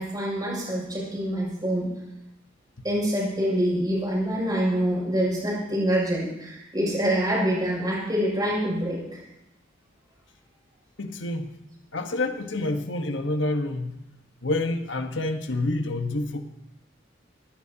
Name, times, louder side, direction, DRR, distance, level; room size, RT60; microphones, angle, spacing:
voice 1, 0.0-1.9 2.8-9.2, equal, 20° right, -5 dB, 6.7 m, -26 dB
voice 2, 11.0-11.5 11.9-14.0 14.4-16.4, left 2 dB, 70° left, 6 dB, 1.4 m, -28 dB
19.5 x 17.5 x 2.9 m, 0.90 s
head